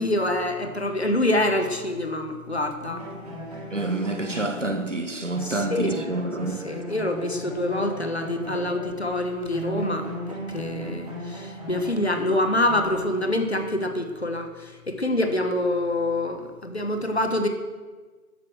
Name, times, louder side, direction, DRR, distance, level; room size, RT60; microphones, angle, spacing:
voice 1, 0.0-3.0 5.4-5.9 6.6-17.5, left 1 dB, 45° left, 1.5 m, -26 dB
sound 1, 2.9-9.2 9.5-13.5, right 1 dB, 25° right, 3.2 m, -37 dB
voice 2, 3.7-6.7, right 2 dB, 50° right, 1.6 m, -28 dB
13.0 x 10.0 x 6.4 m
figure-of-eight pair, 170°, 46 cm